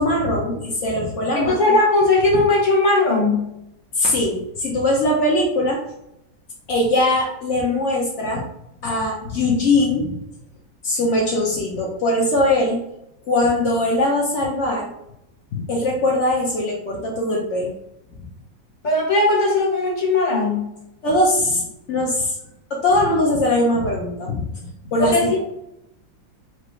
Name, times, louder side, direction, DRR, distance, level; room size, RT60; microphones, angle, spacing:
voice 1, 0.0-1.6 3.9-5.8 6.7-8.4 8.8-10.1 10.8-12.8 13.3-14.9 15.5-17.7 21.0-21.6 21.9-22.4 22.7-24.5 24.9-25.4, left 1 dB, 80° left, -2 dB, 0.6 m, -21 dB
voice 2, 1.4-3.5 18.8-20.7 25.0-25.4, left 2 dB, 30° left, -3 dB, 0.9 m, -18 dB
4.7 x 2.5 x 3.1 m, 0.82 s
omnidirectional pair, 2.1 m